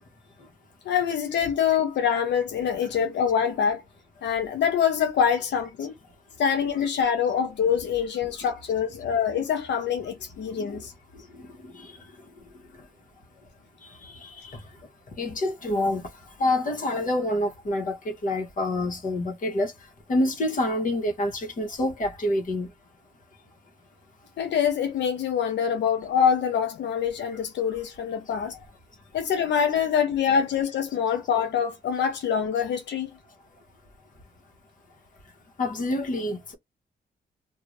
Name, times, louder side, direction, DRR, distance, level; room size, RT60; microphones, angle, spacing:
voice 1, 0.9-3.8 4.2-5.9 6.4-10.9 24.4-28.5 29.1-33.1, left 7 dB, 90° left, 0.5 m, -25 dB
voice 2, 13.8-14.6 15.2-16.0 16.4-19.7 20.1-22.7 35.6-36.5, left 1 dB, 50° left, 1.0 m, -27 dB
2.5 x 2.3 x 3.1 m
wide cardioid pair, 145°, 18 cm